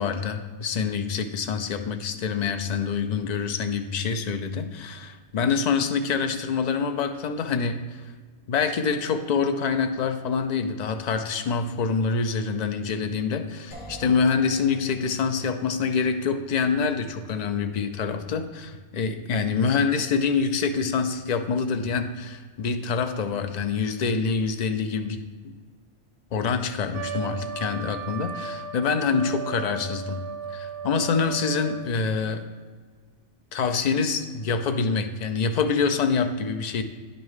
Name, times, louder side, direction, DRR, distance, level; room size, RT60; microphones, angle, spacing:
voice 1, 0.0-8.0 8.5-25.2 26.3-30.2 30.5-32.5 33.5-36.8, left 5 dB, 50° left, 8 dB, 0.5 m, -26 dB
sound 1, 13.7-23.5, right 3 dB, 80° left, 1.6 m, -49 dB
Trumpet, 26.9-31.9, right 6 dB, 90° right, 1.1 m, -36 dB
9.7 x 5.4 x 3.2 m, 1.5 s
omnidirectional pair, 1.2 m